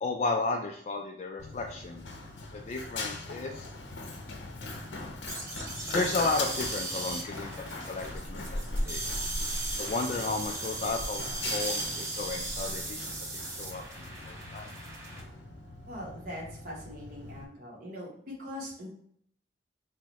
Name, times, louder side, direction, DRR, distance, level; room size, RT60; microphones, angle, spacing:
voice 1, 0.0-2.0 2.5-3.7 5.9-7.5 7.9-9.0 9.8-13.1 13.3-14.7, left 3 dB, 40° left, 3 dB, 0.3 m, -33 dB
Run, 1.4-17.4, left 2 dB, 75° left, 0.7 m, -39 dB
sound 1, 5.3-15.2, right 2 dB, 15° right, 0.9 m, -37 dB
voice 2, 15.9-18.9, left 1 dB, 55° right, -3 dB, 0.9 m, -41 dB
4.6 x 2.1 x 3.9 m, 0.65 s
head